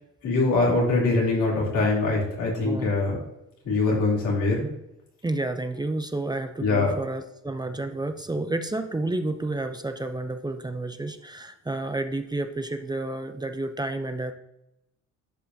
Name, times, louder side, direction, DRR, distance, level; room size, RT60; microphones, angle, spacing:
voice 1, 0.2-3.2 3.6-4.7 6.6-7.0, left 3 dB, 80° left, -3 dB, 3.2 m, -23 dB
voice 2, 2.6-3.0 5.2-14.3, right 2 dB, 15° right, 7 dB, 0.6 m, -30 dB
11.5 x 5.4 x 2.8 m, 0.86 s
cardioid pair, 90°, 30 cm